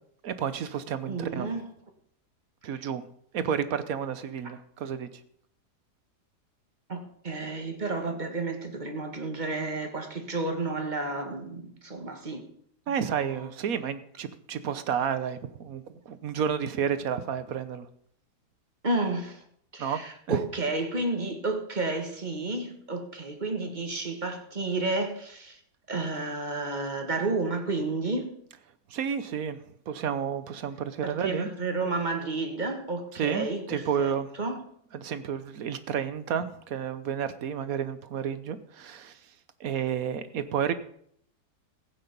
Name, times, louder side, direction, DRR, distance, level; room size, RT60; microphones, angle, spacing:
voice 1, 0.2-1.5 2.6-3.0 3.3-5.1 12.9-17.9 19.8-20.0 20.3-20.4 28.9-29.6 29.9-31.5 33.1-34.3 34.9-39.2 39.6-40.7, right 8 dB, 60° right, 1.3 m, -31 dB
voice 2, 1.1-1.7 6.9-12.4 12.9-13.5 18.8-19.4 19.7-25.6 25.9-28.4 31.0-34.6, right 3 dB, 30° right, 1.6 m, -31 dB
15.5 x 8.8 x 5.3 m
omnidirectional pair, 1.8 m